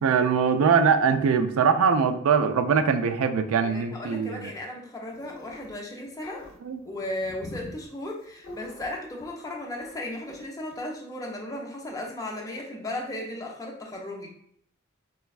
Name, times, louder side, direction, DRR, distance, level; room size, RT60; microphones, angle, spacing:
voice 1, 0.0-4.5 6.6-6.8, right 6 dB, 85° right, 8 dB, 0.3 m, -22 dB
voice 2, 3.6-6.5 6.9-14.3, left 1 dB, 15° left, -1 dB, 0.4 m, -35 dB
sound 1, 5.1-5.7 6.0-9.5 9.7-10.0 10.3-10.5 10.7-10.8, left 2 dB, 80° left, 0.5 m, -44 dB
4.2 x 2.2 x 2.3 m, 0.67 s
head